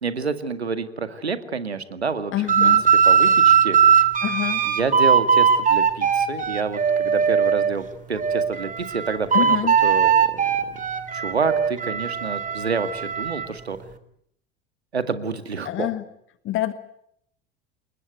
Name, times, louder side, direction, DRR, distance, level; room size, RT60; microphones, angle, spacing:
voice 1, 0.0-2.3 2.6-2.8 3.0-3.8 4.6-9.6 9.8-10.5 11.1-13.8 14.9-15.9, right 5 dB, 85° right, 11 dB, 2.1 m, -28 dB
voice 2, 2.3-2.9 4.2-4.7 9.3-9.8 15.6-16.0 16.4-16.7, left 14 dB, 40° left, 12 dB, 1.7 m, -26 dB
sound 1, 2.5-7.7 8.2-13.5, right 7 dB, 25° right, 3.1 m, -19 dB
29.0 x 21.0 x 9.4 m, 0.73 s
figure-of-eight pair, 70°, 31 cm